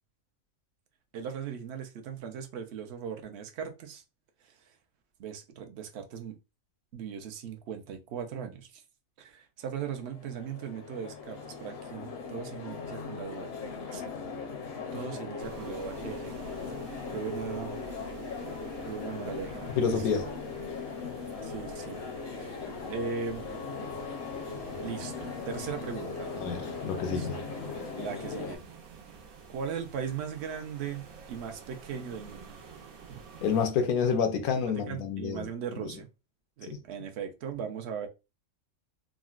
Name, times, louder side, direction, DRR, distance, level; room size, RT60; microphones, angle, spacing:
voice 1, 1.1-4.0 4.4-4.7 5.2-6.4 6.9-8.8 9.2-13.5 13.9-14.0 14.9-16.4 17.1-17.8 18.8-20.1 21.4-22.0 22.3-22.6 22.9-23.5 24.8-26.3 27.1-27.5 27.9-29.0 29.5-32.6 33.1-33.2 34.9-36.1 36.6-38.1, right 7 dB, 60° right, 0.7 m, -38 dB
sound 1, 9.8-28.6, left 5 dB, 55° left, 0.7 m, -39 dB
sound 2, 15.4-33.7, right 5 dB, 80° right, 1.2 m, -48 dB
voice 2, 19.8-20.3 26.3-27.4 33.4-35.5 35.7-35.9 36.7-36.8, left 6 dB, 85° left, 1.1 m, -28 dB
3.7 x 2.0 x 2.3 m
omnidirectional pair, 1.5 m